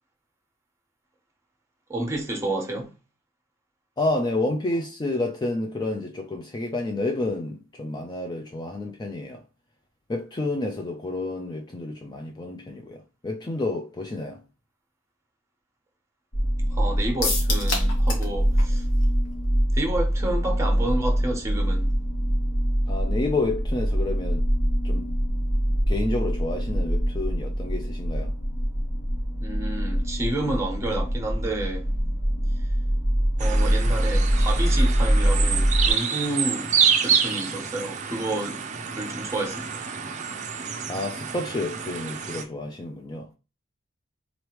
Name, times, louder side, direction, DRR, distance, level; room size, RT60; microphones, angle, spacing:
voice 1, 1.9-2.9 16.7-18.8 19.7-21.9 29.4-31.9 33.4-36.7 37.0-39.9, right 1 dB, 15° right, 1.1 m, -30 dB
voice 2, 4.0-9.4 10.1-14.4 22.9-24.4 24.8-25.1 25.9-28.3 40.9-43.3, left 2 dB, 20° left, 0.4 m, -29 dB
sound 1, 16.3-35.9, equal, 90° left, 1.6 m, -24 dB
sound 2, 17.2-18.3 18.6-18.7 19.0-19.1, left 3 dB, 65° left, 1.4 m, -28 dB
sound 3, 33.4-42.4, right 7 dB, 35° right, 0.5 m, -28 dB
3.9 x 3.2 x 3.0 m
head